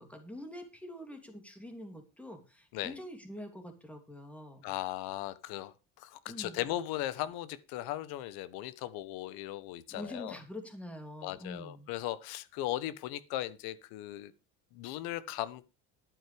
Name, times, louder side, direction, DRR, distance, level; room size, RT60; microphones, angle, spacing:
voice 1, 0.0-4.6 6.3-6.6 9.9-11.9, left 1 dB, 5° left, 2.9 m, -45 dB
voice 2, 4.6-10.4 11.2-14.3 14.7-15.7, left 14 dB, 75° left, 1.3 m, -38 dB
11.5 x 9.4 x 5.2 m
cardioid pair, 140°, 37 cm